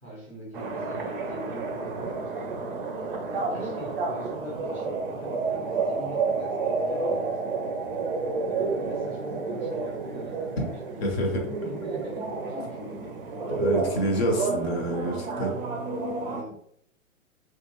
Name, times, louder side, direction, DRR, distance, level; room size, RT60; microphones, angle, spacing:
voice 1, 0.0-2.9 3.3-7.6 8.5-13.3 16.2-16.6, right 1 dB, 5° left, -6 dB, 0.5 m, -43 dB
sound 1, 0.5-16.4, right 4 dB, 45° right, 0.5 m, -30 dB
voice 2, 11.0-11.4 13.5-15.6, equal, 50° left, 1 dB, 0.9 m, -27 dB
2.4 x 2.3 x 2.9 m, 0.67 s
figure-of-eight pair, 115°, 40 cm